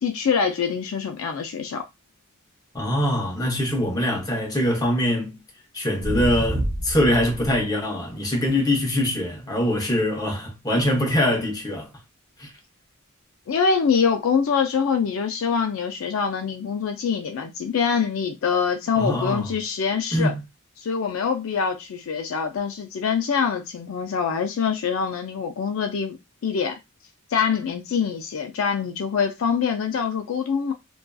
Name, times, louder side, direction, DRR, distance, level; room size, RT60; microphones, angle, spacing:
voice 1, 0.0-1.8 13.5-20.3 20.8-26.2 26.4-26.8 27.3-30.7, left 6 dB, 65° left, 0.4 m, -24 dB
voice 2, 2.7-5.4 5.7-11.9 12.4-12.5 19.0-19.5 20.1-20.4, left 1 dB, 20° left, 0.7 m, -23 dB
sound 1, 6.0-7.6 8.5-8.6 14.5-14.6, right 1 dB, 60° right, 0.7 m, -28 dB
2.6 x 2.3 x 2.2 m
head